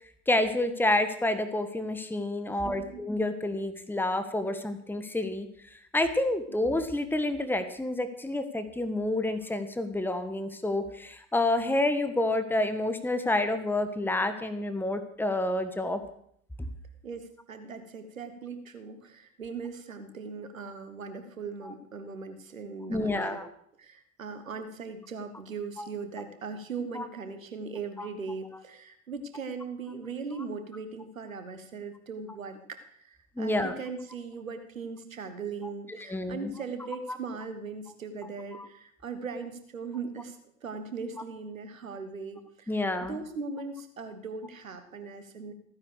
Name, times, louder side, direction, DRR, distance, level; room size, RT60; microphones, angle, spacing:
voice 1, 0.3-16.0 16.6-16.7 22.9-23.5 25.8-25.9 26.9-27.1 28.0-28.1 33.4-33.7 36.0-36.5 38.5-38.7 42.7-43.2, left 2 dB, 5° left, 9 dB, 1.5 m, -29 dB
voice 2, 2.5-3.0 6.5-6.6 17.0-23.4 23.8-45.5, right 4 dB, 90° right, 10 dB, 1.4 m, -39 dB
15.5 x 9.7 x 6.7 m, 0.67 s
figure-of-eight pair, 60°, 39 cm